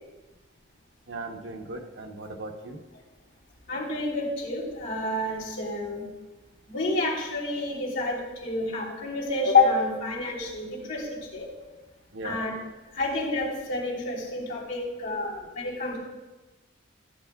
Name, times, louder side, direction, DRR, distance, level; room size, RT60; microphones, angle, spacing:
voice 1, 1.1-2.8 12.1-12.4, right 2 dB, 80° right, 3 dB, 1.2 m, -38 dB
voice 2, 3.7-6.0 6.7-11.5 12.2-12.5 12.9-16.0, left 3 dB, 75° left, -4 dB, 3.4 m, -28 dB
15.5 x 9.1 x 2.4 m, 1.1 s
head